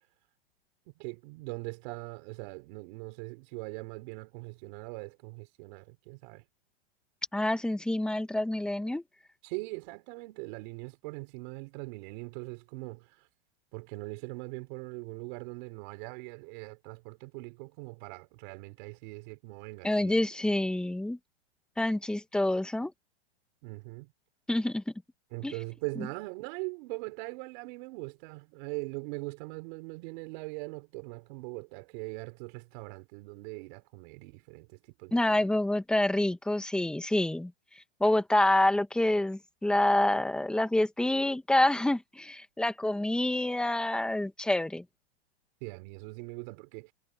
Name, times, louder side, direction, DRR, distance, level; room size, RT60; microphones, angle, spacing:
voice 1, 0.9-6.4 9.4-13.2 13.7-20.2 23.6-24.1 25.3-35.4 45.6-46.9, right 27 dB, 50° right, 4.7 m, -41 dB
voice 2, 7.3-9.0 19.8-21.2 21.8-22.9 24.5-24.9 25.4-25.5 26.0-26.1 35.1-44.8, left 1 dB, 5° left, 1.5 m, -27 dB
supercardioid pair, 145°, 32 cm